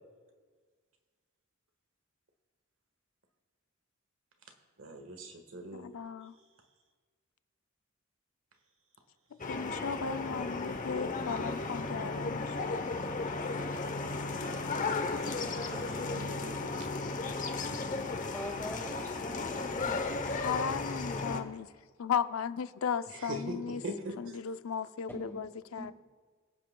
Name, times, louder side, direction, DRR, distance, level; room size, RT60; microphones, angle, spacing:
voice 1, 4.8-5.9 15.2-16.9 23.3-23.6 23.8-24.2, right 1 dB, 70° right, 1.5 m, -42 dB
voice 2, 5.7-6.4 9.3-12.6 20.4-21.7 22.0-23.8 24.2-25.9, left 7 dB, 85° left, 0.5 m, -36 dB
sound 1, 9.4-21.4, left 3 dB, 40° left, 0.8 m, -35 dB
voice 3, 18.3-20.0 25.1-25.4 25.8-25.9, equal, 10° left, 2.0 m, -42 dB
24.5 x 8.4 x 2.3 m
head